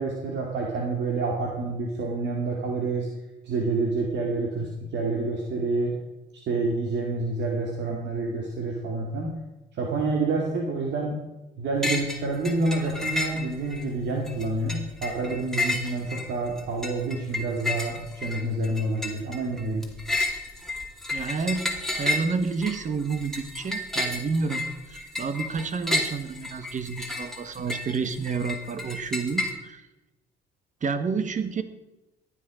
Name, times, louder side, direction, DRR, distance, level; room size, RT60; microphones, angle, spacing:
voice 1, 0.0-3.1 3.4-5.9 6.5-9.4 9.7-11.2 11.6-19.9, right 3 dB, 60° right, 0 dB, 2.5 m, -28 dB
sound 1, 11.8-12.2 12.5-13.8 14.3-29.5, left 2 dB, ahead, 2.5 m, -31 dB
voice 2, 21.1-21.7 22.0-24.6 24.9-29.9 30.8-31.6, right 5 dB, 40° right, 11 dB, 1.5 m, -29 dB
15.0 x 10.5 x 5.1 m, 1.0 s
cardioid pair, 100°, 20 cm